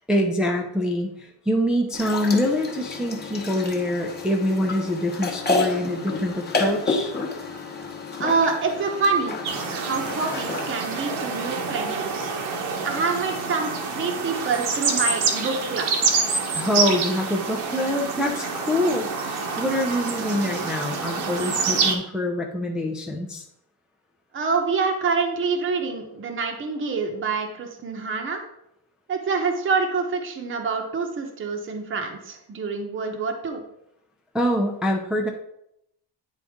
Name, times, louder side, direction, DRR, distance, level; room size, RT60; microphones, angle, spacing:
voice 1, 0.1-7.1 16.5-23.4 34.3-35.3, left 1 dB, ahead, 0 dB, 0.5 m, -25 dB
sound 1, 1.9-10.7, left 3 dB, 20° left, 1.1 m, -30 dB
voice 2, 8.2-9.4 9.7-12.3 12.8-16.1 24.3-28.4 29.1-33.6, right 4 dB, 25° right, 3 dB, 0.9 m, -26 dB
sound 2, 9.4-21.9, right 4 dB, 80° right, 1.3 m, -27 dB
9.5 x 4.1 x 3.6 m, 0.79 s
cardioid pair, 140°, 46 cm